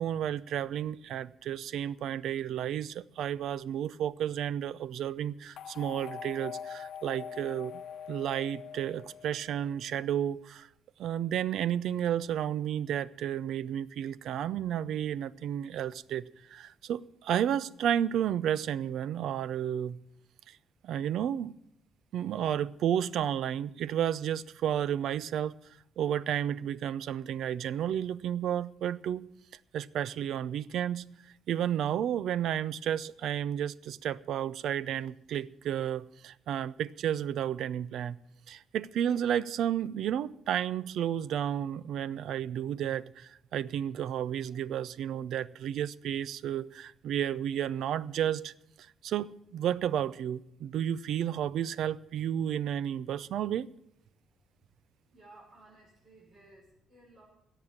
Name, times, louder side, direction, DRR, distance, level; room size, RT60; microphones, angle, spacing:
voice 1, 0.0-7.8 8.1-10.7 11.0-20.0 20.8-21.5 22.1-25.6 26.0-29.3 29.7-31.0 31.5-38.2 38.5-48.5 49.0-53.7, right 10 dB, 75° right, 0.5 m, -32 dB
sound 1, 5.6-9.8, left 8 dB, 65° left, 0.9 m, -43 dB
voice 2, 55.1-57.2, right 2 dB, 35° right, 5.9 m, -57 dB
17.0 x 7.2 x 7.3 m
cardioid pair, 160°, 0 cm